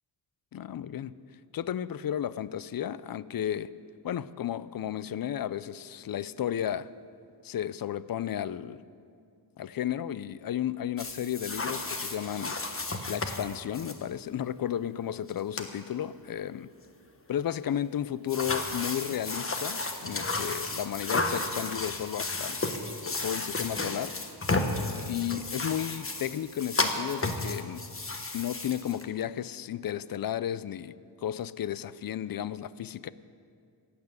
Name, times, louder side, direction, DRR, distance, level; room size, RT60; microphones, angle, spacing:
voice 1, 0.5-1.2 1.5-3.7 4.0-6.9 7.4-8.8 9.6-12.6 13.1-16.7 17.3-22.6 23.1-24.1 25.1-27.8 28.3-33.1, left 10 dB, 50° left, 18 dB, 0.5 m, -33 dB
sound 1, 11.0-13.9 15.3-15.4 15.6-15.7 18.3-29.0, left 3 dB, 30° left, 1.3 m, -33 dB
15.0 x 9.7 x 8.0 m, 2.3 s
wide cardioid pair, 95°, 45 cm